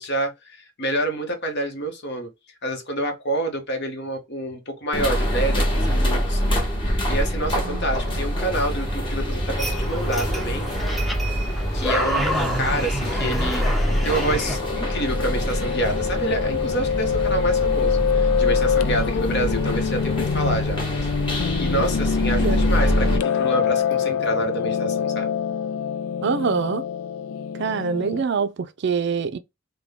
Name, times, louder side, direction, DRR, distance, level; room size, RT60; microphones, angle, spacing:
voice 1, 0.0-2.3 2.6-6.4 7.0-10.7 11.7-13.6 14.0-21.1 21.6-25.3, right 1 dB, 55° left, 1.0 m, -28 dB
sound 1, 4.9-23.2, equal, 25° left, 1.0 m, -25 dB
voice 2, 7.6-8.0 22.3-22.6 26.2-26.8 27.6-29.4, right 5 dB, 55° right, 0.4 m, -25 dB
sound 2, 9.6-14.6, equal, ahead, 0.5 m, -29 dB
Piano, 13.8-28.2, left 7 dB, 90° left, 0.4 m, -25 dB
3.6 x 2.2 x 3.5 m
head